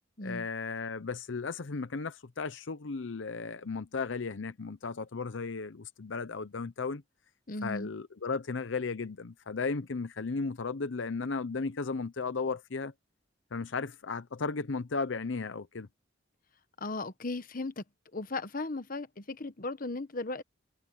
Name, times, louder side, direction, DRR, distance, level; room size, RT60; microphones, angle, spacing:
voice 1, 0.2-7.0 7.6-12.9 13.5-15.9, left 4 dB, 80° left, 0.7 m, -35 dB
voice 2, 7.5-7.9 16.8-17.8 18.1-20.4, left 2 dB, 45° left, 1.1 m, -36 dB
head